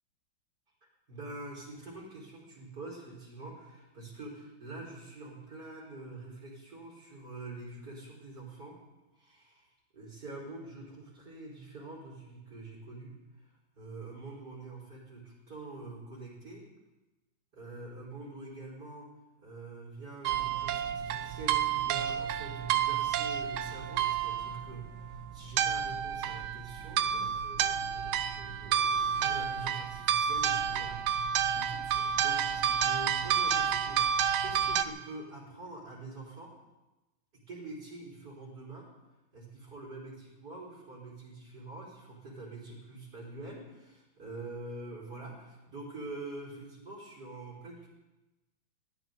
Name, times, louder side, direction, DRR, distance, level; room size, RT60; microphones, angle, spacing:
voice 1, 1.1-8.8 9.1-9.7 9.9-16.7 17.5-19.1 19.4-36.5 37.3-38.9 39.3-47.9, right 2 dB, 50° right, -4 dB, 5.1 m, -45 dB
sound 1, 20.2-34.8, right 8 dB, 85° right, 1.6 m, -30 dB
21.0 x 16.0 x 4.0 m, 1.1 s
omnidirectional pair, 2.3 m